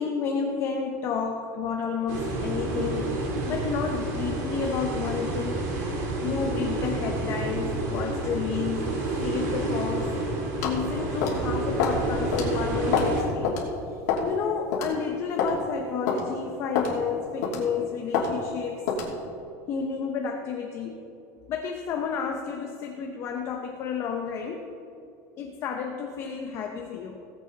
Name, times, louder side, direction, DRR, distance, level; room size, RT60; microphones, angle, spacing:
voice 1, 0.0-3.1 3.4-5.7 6.2-8.9 9.2-10.1 10.6-13.6 13.9-18.8 19.7-21.0 21.5-24.7 25.4-27.2, left 6 dB, 30° left, 2 dB, 0.7 m, -31 dB
sound 1, 2.1-13.2, right 2 dB, 85° right, 3.2 m, -29 dB
sound 2, 10.6-10.8 11.2-11.4 11.8-12.0 12.3-12.5 12.9-13.2 13.4-13.6 14.1-14.3 14.7-14.9 15.4-15.6 16.1-16.2 16.8-16.9 17.4-17.7 18.1-18.3 18.9-19.1, left 6 dB, 80° left, 2.8 m, -26 dB
18.5 x 7.9 x 4.0 m, 2.6 s
cardioid pair, 180°, 9 cm